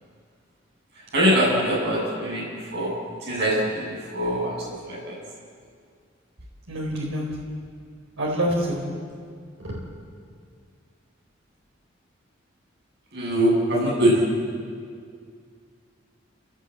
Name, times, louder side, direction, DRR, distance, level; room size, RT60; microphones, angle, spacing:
voice 1, 1.1-2.9 3.2-4.5 4.8-5.2 13.1-14.3, equal, 60° right, -4 dB, 7.5 m, -23 dB
voice 2, 6.7-7.3 8.2-8.8 9.6-9.8, equal, 80° right, -2 dB, 4.1 m, -26 dB
28.5 x 18.0 x 8.4 m, 2.1 s
head